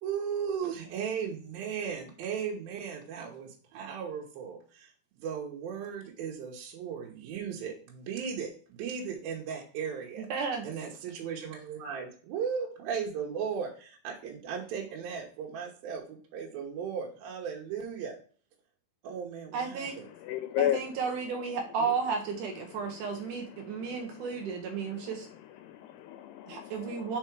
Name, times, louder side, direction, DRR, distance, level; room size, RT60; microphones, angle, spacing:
voice 1, 0.0-10.3 10.6-18.2 19.0-20.1 21.8-21.9, right 7 dB, 70° right, 2.7 m, -36 dB
voice 2, 10.3-10.7 19.5-20.0 20.6-25.3 26.5-27.2, right 5 dB, 90° right, 1.8 m, -33 dB
voice 3, 20.2-20.8 23.8-24.1 25.6-27.1, left 12 dB, 85° left, 2.5 m, -33 dB
5.9 x 4.3 x 4.5 m
omnidirectional pair, 4.8 m